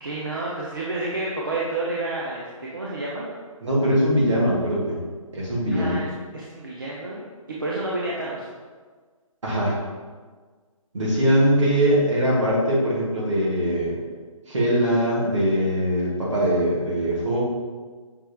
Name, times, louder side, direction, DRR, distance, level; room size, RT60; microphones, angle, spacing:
voice 1, 0.0-3.3 5.7-7.2 7.6-8.5, right 2 dB, 35° right, -5 dB, 0.4 m, -30 dB
voice 2, 3.6-5.0 5.3-6.0 9.4-9.8 10.9-14.0 14.5-17.4, equal, 55° right, -4 dB, 1.3 m, -21 dB
5.9 x 2.3 x 3.3 m, 1.5 s
hypercardioid pair, 175°, 18 cm